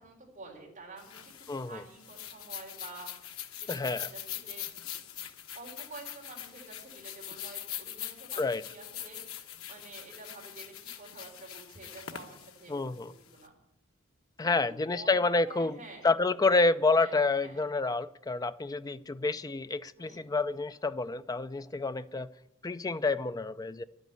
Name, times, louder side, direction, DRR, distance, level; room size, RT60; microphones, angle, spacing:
voice 1, 0.0-4.8 5.5-13.5 14.4-16.1 16.9-17.6 20.0-20.3, right 3 dB, 35° right, -1 dB, 4.1 m, -50 dB
sound 1, 1.0-13.4, left 11 dB, 90° left, 1.2 m, -43 dB
voice 2, 1.5-1.8 3.7-4.1 8.4-8.6 12.7-13.1 14.4-15.8 16.0-22.3 22.6-23.8, left 3 dB, 20° left, 13 dB, 0.4 m, -28 dB
11.5 x 9.1 x 8.2 m, 0.79 s
head